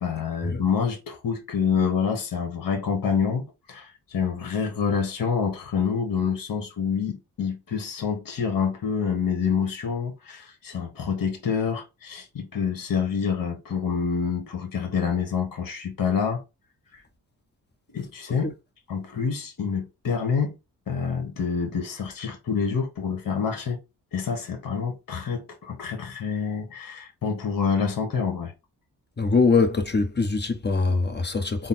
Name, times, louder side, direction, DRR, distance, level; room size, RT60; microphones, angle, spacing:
voice 1, 0.0-16.4 17.9-18.5 18.9-20.5 20.9-23.8 24.1-28.5, left 6 dB, 60° left, 1.3 m, -27 dB
voice 2, 29.2-31.7, left 4 dB, 25° left, 0.8 m, -23 dB
3.9 x 2.0 x 4.0 m
cardioid pair, 70°, 38 cm